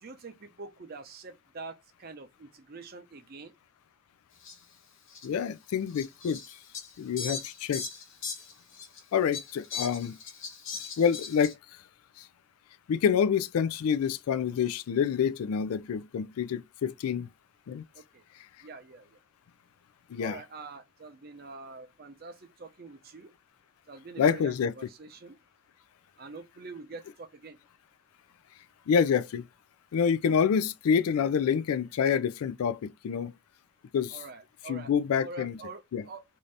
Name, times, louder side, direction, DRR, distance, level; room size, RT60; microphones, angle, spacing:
voice 1, 0.0-3.5 17.9-18.2 18.6-19.2 20.2-23.3 23.9-25.4 26.2-27.6 34.1-34.9 35.2-36.2, right 3 dB, 45° right, 0.5 m, -45 dB
Fowl, 4.4-4.5 5.1-5.3 5.9-9.0 9.3-11.5, left 5 dB, 60° left, 0.9 m, -39 dB
voice 2, 5.2-6.6 7.0-7.8 9.1-10.2 11.0-11.5 12.2-12.3 12.9-17.3 17.7-17.8 20.1-20.4 24.2-24.7 28.9-29.4 29.9-33.3 33.9-34.2 34.7-35.6 35.9-36.0, left 7 dB, 85° left, 0.3 m, -27 dB
2.7 x 2.5 x 3.2 m
head